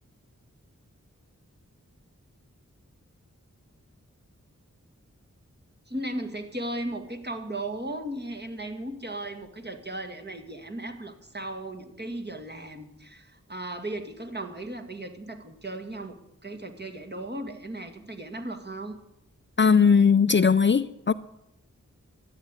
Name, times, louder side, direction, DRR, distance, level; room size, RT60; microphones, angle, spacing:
voice 1, 5.9-19.0, right 1 dB, 35° right, 5 dB, 2.0 m, -36 dB
voice 2, 19.6-21.1, left 6 dB, 40° left, 14 dB, 0.5 m, -19 dB
13.0 x 8.7 x 9.6 m, 0.86 s
wide cardioid pair, 50°, 30 cm